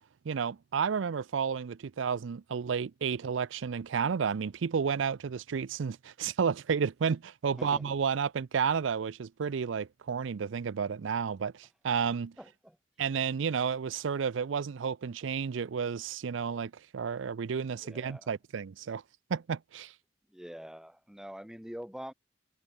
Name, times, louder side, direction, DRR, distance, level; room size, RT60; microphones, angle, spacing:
voice 1, 0.3-12.3 13.0-19.0 19.3-19.9, right 6 dB, 75° right, 0.5 m, -31 dB
voice 2, 7.6-7.9 12.4-12.8 17.8-18.3 20.3-22.1, equal, 5° right, 0.7 m, -45 dB
head